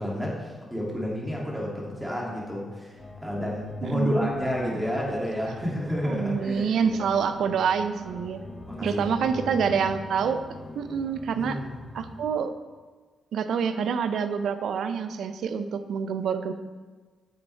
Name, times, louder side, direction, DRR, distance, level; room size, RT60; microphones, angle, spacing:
voice 1, 0.0-7.0 7.4-7.6 8.6-9.8 11.3-11.8, equal, 10° right, -4 dB, 2.6 m, -31 dB
sound 1, 3.0-12.3, left 2 dB, 30° left, 1.0 m, -45 dB
voice 2, 3.8-4.3 6.0-8.5 8.8-10.4 10.7-11.6 11.9-12.5 13.3-16.5, right 6 dB, 80° right, 10 dB, 0.5 m, -27 dB
9.9 x 6.9 x 3.4 m, 1.4 s
cardioid pair, 90°, 0 cm